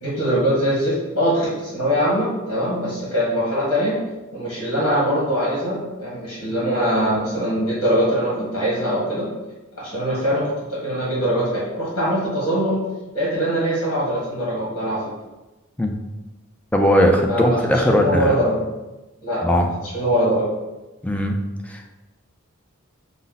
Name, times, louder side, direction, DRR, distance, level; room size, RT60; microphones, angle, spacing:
voice 1, 0.0-4.0 4.3-9.3 9.8-10.4 10.7-12.8 13.1-15.1 17.3-17.6 17.9-18.6 19.2-19.5 19.9-20.4, equal, 75° left, -7 dB, 1.5 m, -22 dB
voice 2, 16.7-18.4 19.4-19.7 21.0-21.4 21.7-21.9, equal, 5° left, 2 dB, 0.4 m, -18 dB
5.3 x 2.0 x 3.9 m, 1.1 s
head